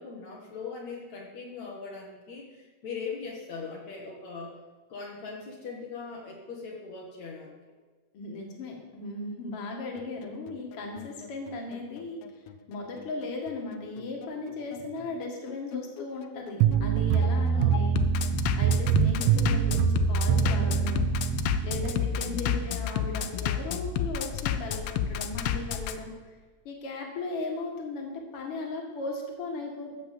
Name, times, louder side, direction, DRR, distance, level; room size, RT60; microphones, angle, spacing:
voice 1, 0.0-4.5 4.9-7.6 14.7-14.9 17.5-17.9 22.2-22.7, left 5 dB, 65° left, -2 dB, 2.7 m, -40 dB
voice 2, 8.1-12.2 12.7-18.0 18.6-21.0 21.6-26.1 26.6-30.0, left 2 dB, 50° left, 1 dB, 2.7 m, -37 dB
Bass drum, 10.0-26.0, left 9 dB, 80° left, 1.3 m, -31 dB
sound 1, 16.6-21.9, right 8 dB, 80° right, 1.9 m, -25 dB
14.0 x 5.9 x 7.6 m, 1.3 s
omnidirectional pair, 3.5 m